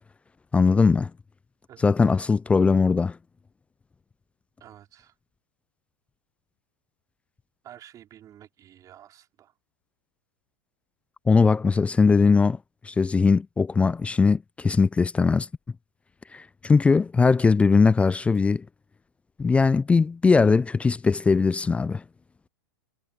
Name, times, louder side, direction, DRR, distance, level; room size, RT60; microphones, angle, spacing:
voice 1, 0.5-1.1 1.8-3.2 11.3-12.6 12.8-15.5 16.3-18.7 19.4-22.0, left 4 dB, 10° left, 0.4 m, -20 dB
voice 2, 1.7-2.2 4.6-5.2 7.6-9.5, right 11 dB, 30° right, 4.8 m, -50 dB
hypercardioid pair, 110°, 12 cm